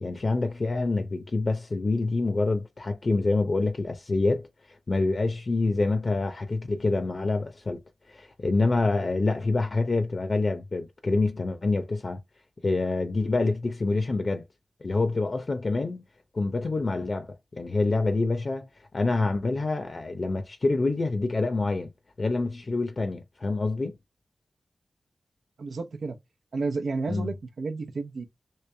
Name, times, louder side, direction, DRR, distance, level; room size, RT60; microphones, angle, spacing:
voice 1, 0.0-4.5 4.9-7.8 8.1-12.2 12.6-14.4 14.8-16.0 16.3-18.7 18.9-21.9 22.2-24.0 27.1-27.3, left 3 dB, 55° left, 0.7 m, -26 dB
voice 2, 25.6-26.2 26.5-28.3, right 3 dB, 90° right, 0.7 m, -31 dB
3.2 x 2.8 x 3.3 m
wide cardioid pair, 65°, 0 cm